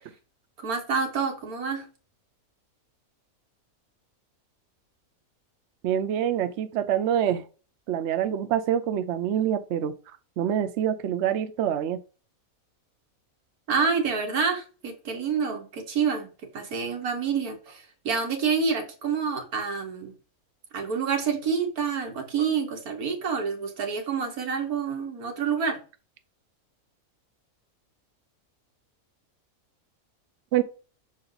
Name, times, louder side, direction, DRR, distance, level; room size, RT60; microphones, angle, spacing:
voice 1, 0.6-1.8 13.7-16.3 16.5-20.1 20.7-25.8, right 5 dB, 85° right, 1.9 m, -28 dB
voice 2, 5.8-7.4 7.9-9.9 10.4-12.0 30.5-30.6, right 10 dB, 60° right, 0.8 m, -26 dB
6.4 x 4.3 x 4.0 m
omnidirectional pair, 1.5 m